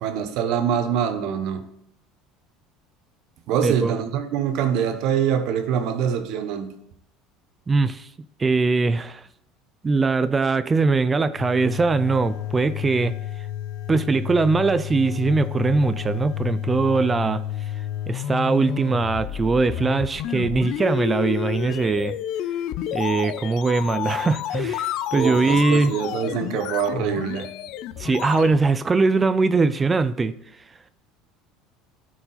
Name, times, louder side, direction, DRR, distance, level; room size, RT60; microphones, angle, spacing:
voice 1, 0.0-1.7 3.5-6.7 25.1-27.5, right 8 dB, 65° right, 1.1 m, -24 dB
voice 2, 7.7-8.1 8.4-9.3 9.8-13.1 13.9-17.4 18.1-22.2 22.9-25.9 28.0-30.4, right 4 dB, 20° right, 0.4 m, -21 dB
sound 1, 11.4-28.6, left 12 dB, 60° left, 0.4 m, -30 dB
12.5 x 4.7 x 4.2 m
supercardioid pair, 125°, 0 cm